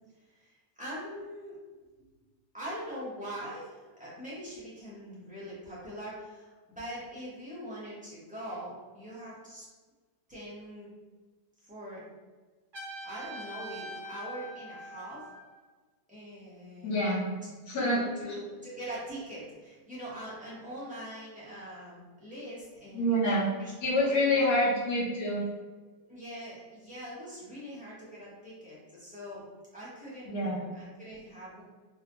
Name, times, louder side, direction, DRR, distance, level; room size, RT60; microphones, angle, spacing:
voice 1, 0.4-1.5 2.0-2.1 2.5-9.6 10.3-10.9 11.6-12.0 13.0-15.2 16.1-16.9 17.8-23.2 23.6-24.5 26.1-29.4 29.7-31.6, equal, 10° right, -10 dB, 0.3 m, -43 dB
Trumpet, 12.7-15.6, equal, 45° right, 0.7 m, -43 dB
voice 2, 16.8-17.3 17.7-18.4 22.9-23.5 23.8-25.4 30.2-30.7, left 1 dB, 60° left, -6 dB, 1.4 m, -27 dB
3.9 x 2.2 x 2.9 m, 1.3 s
omnidirectional pair, 2.1 m